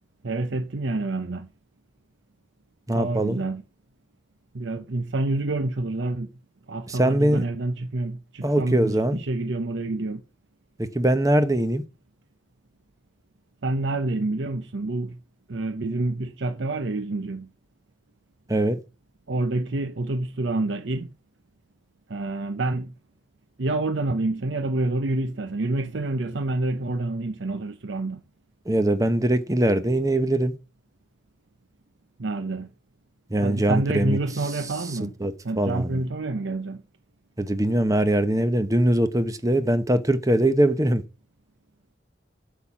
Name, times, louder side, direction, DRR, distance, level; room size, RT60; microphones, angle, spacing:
voice 1, 0.2-1.5 2.9-3.6 4.5-6.3 6.7-10.2 13.6-15.2 15.5-17.5 19.3-21.1 22.1-22.9 23.6-28.2 32.2-32.7 33.4-35.1 35.4-36.8, right 2 dB, 65° right, 0.7 m, -27 dB
voice 2, 2.9-3.4 6.9-7.4 8.4-9.2 10.8-11.8 18.5-18.8 28.7-30.5 33.3-34.2 34.5-36.0 37.4-41.0, right 1 dB, 15° right, 0.9 m, -22 dB
8.3 x 7.3 x 6.1 m
head